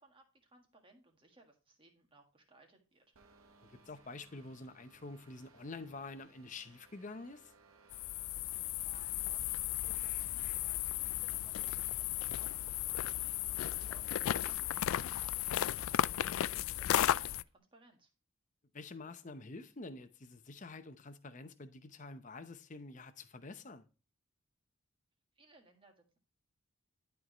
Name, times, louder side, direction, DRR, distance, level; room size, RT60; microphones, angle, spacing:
voice 1, 0.0-3.1 8.8-18.1 25.3-26.2, right 2 dB, 25° right, 1.5 m, -64 dB
sound 1, 3.1-14.5, right 3 dB, 85° right, 1.2 m, -64 dB
voice 2, 3.7-7.5 14.7-14.8 18.7-23.8, left 3 dB, 35° left, 0.7 m, -48 dB
sound 2, 7.9-17.4, left 12 dB, 75° left, 0.3 m, -35 dB
11.0 x 4.7 x 3.0 m
head